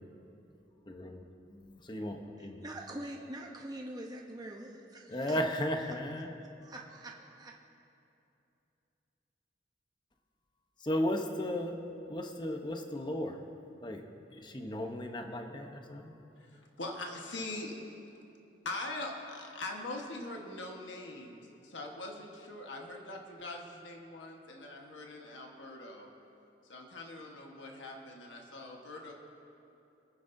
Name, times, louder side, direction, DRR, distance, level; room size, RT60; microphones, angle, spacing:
voice 1, 0.9-1.2 1.5-2.6 5.1-6.4 10.8-11.8 12.1-13.4 13.8-14.0 14.3-16.1, left 1 dB, 25° left, 4 dB, 0.8 m, -35 dB
voice 2, 2.4-5.6 6.6-7.5, right 1 dB, 20° right, 0 dB, 0.8 m, -44 dB
voice 3, 16.4-17.7 18.6-26.1 26.7-29.1, left 2 dB, 90° left, 1 dB, 1.4 m, -42 dB
26.5 x 9.5 x 2.7 m, 2.8 s
head